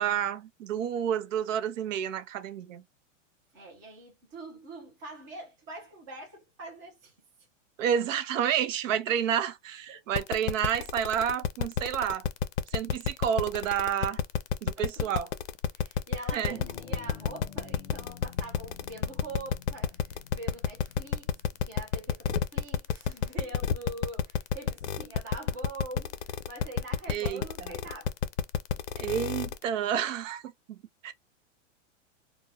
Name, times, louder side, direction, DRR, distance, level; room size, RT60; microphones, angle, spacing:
voice 1, 0.0-2.8 7.8-12.2 12.7-14.2 14.6-15.3 16.3-16.6 27.1-27.4 29.0-30.4 30.7-30.8 31.0-31.1, right 9 dB, 80° right, 0.6 m, -29 dB
voice 2, 3.5-7.1 9.9-10.0 14.8-15.1 15.7-28.1, right 2 dB, 15° right, 0.4 m, -44 dB
sound 1, 10.1-29.6, left 8 dB, 70° left, 0.5 m, -29 dB
sound 2, 16.4-22.2, left 7 dB, 35° left, 0.8 m, -50 dB
2.2 x 2.1 x 3.2 m
supercardioid pair, 180°, 38 cm